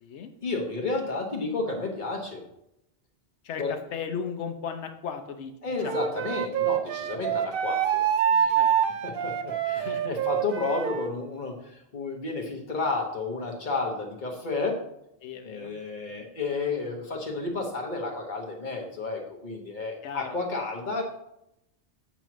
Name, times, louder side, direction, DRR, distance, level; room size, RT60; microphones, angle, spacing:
voice 1, 0.4-2.5 3.6-3.7 5.6-8.0 8.3-8.6 9.0-14.8 15.4-21.0, left 3 dB, 45° left, 1 dB, 1.4 m, -31 dB
voice 2, 3.4-5.5 5.8-6.2 8.5-8.7 9.2-9.3 9.7-10.2 15.2-15.7 16.1-16.2 20.0-20.4, left 6 dB, 80° left, 6 dB, 1.0 m, -36 dB
Wind instrument woodwind instrument, 5.8-11.1, right 8 dB, 60° right, 0.7 m, -26 dB
8.6 x 3.0 x 6.1 m, 0.81 s
omnidirectional pair, 1.2 m